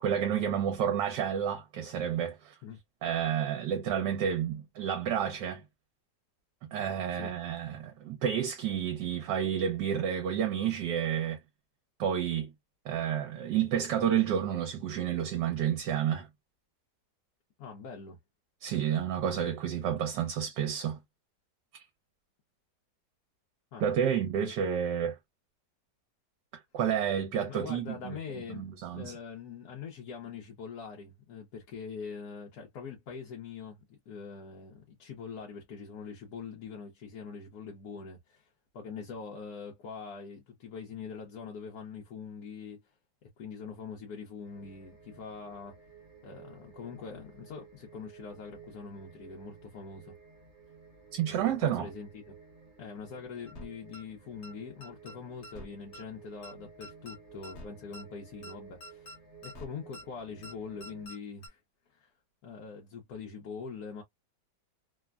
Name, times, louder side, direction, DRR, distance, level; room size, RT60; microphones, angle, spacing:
voice 1, 0.0-2.5 3.0-5.6 6.7-11.4 12.0-12.5 12.8-16.3 18.6-21.0 21.7-21.8 23.8-25.2 26.7-28.2 28.5-29.1 51.1-51.9, right 9 dB, 80° right, 1.3 m, -30 dB
voice 2, 17.6-18.2 23.7-23.8 27.5-28.7 28.9-42.9 43.2-45.8 46.2-50.2 51.3-52.3 52.8-59.1 59.4-61.6 61.9-62.1 62.4-64.0, left 5 dB, 65° left, 1.2 m, -43 dB
sound 1, 44.4-61.1, right 6 dB, 35° right, 0.9 m, -54 dB
sound 2, 53.5-53.7 53.9-54.0 54.4-54.5 54.8-55.1 55.4-55.7 55.9-56.0 56.4-56.5 56.8-57.2 57.4-57.7 57.9-58.0 58.4-58.5 58.8-59.2 59.4-59.7 59.9-60.0 60.4-60.5 60.8-61.2 61.4-61.5, equal, 45° left, 1.1 m, -46 dB
3.3 x 2.1 x 2.2 m
omnidirectional pair, 1.9 m